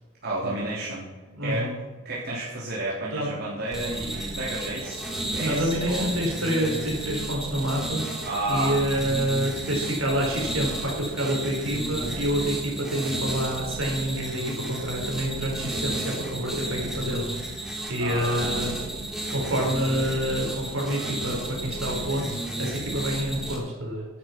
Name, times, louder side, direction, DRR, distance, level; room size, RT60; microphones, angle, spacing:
voice 1, 0.2-1.1 1.4-1.7 2.0-5.1 5.3-6.1 8.2-8.8 18.0-18.5, right 2 dB, 50° right, -7 dB, 3.4 m, -31 dB
voice 2, 1.3-1.8 3.1-3.3 5.4-8.0 8.5-18.7 19.3-24.1, equal, 70° right, -1 dB, 4.8 m, -28 dB
sound 1, 3.7-23.6, right 1 dB, ahead, 2.5 m, -32 dB
11.5 x 9.7 x 6.0 m, 1.3 s
head